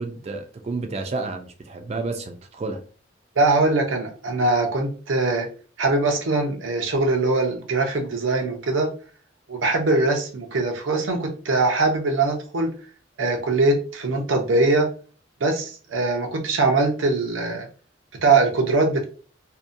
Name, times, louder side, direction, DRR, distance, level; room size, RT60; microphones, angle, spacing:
voice 1, 0.0-2.8, right 3 dB, 35° right, 5 dB, 0.3 m, -30 dB
voice 2, 3.4-5.5 5.8-8.9 9.5-12.7 13.2-14.9 15.4-17.7 18.2-19.0, right 3 dB, 85° right, 4 dB, 0.6 m, -22 dB
2.6 x 2.1 x 2.5 m, 0.39 s
head